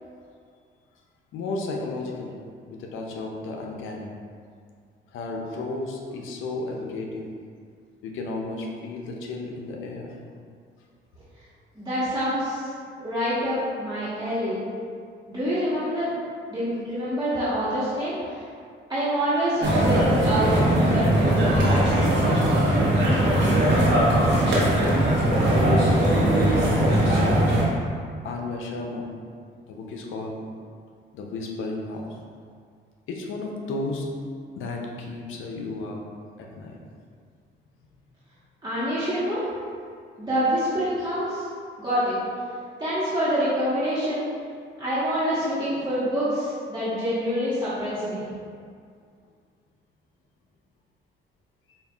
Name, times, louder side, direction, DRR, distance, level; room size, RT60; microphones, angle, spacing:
voice 1, 1.3-2.3 2.7-4.1 5.1-7.3 8.0-10.2 12.7-12.8 25.6-26.1 26.9-27.5 28.2-29.1 29.7-30.4 31.1-32.2 33.1-34.1 34.6-36.0 36.4-36.8, left 2 dB, 80° left, 0 dB, 0.6 m, -33 dB
voice 2, 11.7-12.7 13.0-14.6 15.3-16.1 16.5-18.4 18.9-20.5 20.9-22.0 38.6-39.4 40.2-41.5 41.8-42.2 42.8-44.3 44.8-48.3, equal, 20° right, -14 dB, 1.2 m, -26 dB
sound 1, 19.6-27.6, right 1 dB, 65° right, 1.0 m, -20 dB
5.2 x 2.4 x 2.4 m, 2.2 s
cardioid pair, 90°, 20 cm